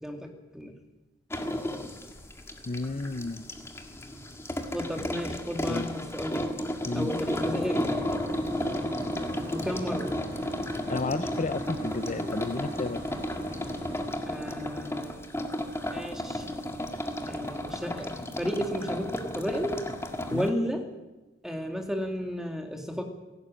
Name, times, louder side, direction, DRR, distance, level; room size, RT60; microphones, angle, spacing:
voice 1, 0.0-0.7 4.7-6.4 6.9-8.0 9.5-10.2 14.3-15.2 15.9-16.5 17.3-19.8 20.3-20.9 21.4-23.0, equal, 5° right, 3 dB, 2.5 m, -33 dB
sound 1, 1.3-20.5, left 1 dB, 15° left, 1.8 m, -33 dB
voice 2, 2.7-3.4 5.0-5.1 5.7-5.9 6.9-7.1 10.9-13.0 20.3-20.5, left 3 dB, 40° left, 12 dB, 0.6 m, -32 dB
sound 2, 7.2-14.1, equal, 30° right, 7.3 m, -42 dB
17.0 x 17.0 x 9.0 m, 1.1 s
head